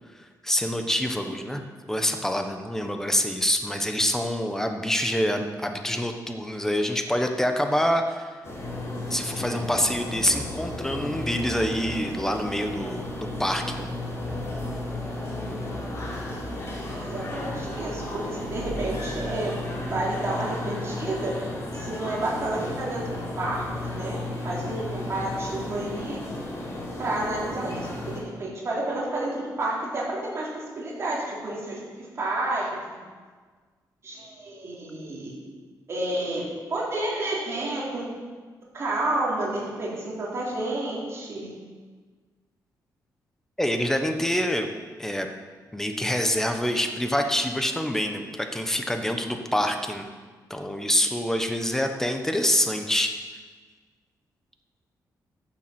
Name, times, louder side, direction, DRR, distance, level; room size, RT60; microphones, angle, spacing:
voice 1, 0.4-1.6 1.9-8.4 9.1-13.9 43.6-44.7 45.0-45.3 45.7-50.1 50.5-53.2, equal, 5° left, 5 dB, 1.1 m, -26 dB
sound 1, 8.4-28.2, left 1 dB, 40° left, 3.5 m, -33 dB
voice 2, 17.0-19.6 19.9-21.3 21.7-26.2 27.0-30.5 30.8-32.8 34.0-35.3 35.9-38.1 38.7-41.5, right 2 dB, 40° right, -5 dB, 3.9 m, -30 dB
14.0 x 7.4 x 6.0 m, 1.5 s
cardioid pair, 125°, 7 cm